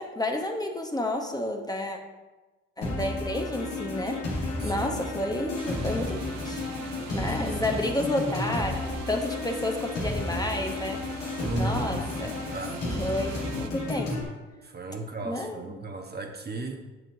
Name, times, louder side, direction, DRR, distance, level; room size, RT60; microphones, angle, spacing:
voice 1, 0.0-2.0 2.8-4.2 4.6-6.7 7.1-11.1 11.5-12.4 13.0-14.2 15.2-15.7, left 1 dB, 15° left, 3 dB, 1.0 m, -31 dB
sound 1, 2.8-14.2, left 2 dB, 90° left, 2.0 m, -32 dB
voice 2, 4.6-5.0 7.3-7.7 11.4-12.0 12.5-12.9 13.2-13.7 14.6-16.8, right 2 dB, 35° right, 3 dB, 1.1 m, -36 dB
sound 2, 5.6-13.7, right 9 dB, 65° right, 0.6 m, -46 dB
7.9 x 6.9 x 2.7 m, 1.2 s
hypercardioid pair, 55°, 30 cm